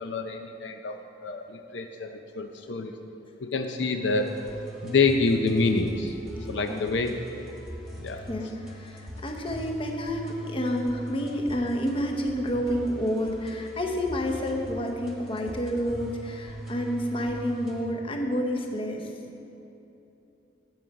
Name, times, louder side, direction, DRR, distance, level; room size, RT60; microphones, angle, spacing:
voice 1, 0.0-2.1 2.3-2.9 3.4-4.3 4.8-6.1 6.5-7.1 8.0-8.2, left 3 dB, 75° left, 5 dB, 0.6 m, -26 dB
sound 1, 4.1-17.9, equal, ahead, 1.2 m, -41 dB
voice 2, 8.3-19.1 19.4-19.5, equal, 30° left, 2 dB, 0.8 m, -29 dB
9.2 x 7.8 x 4.7 m, 2.9 s
head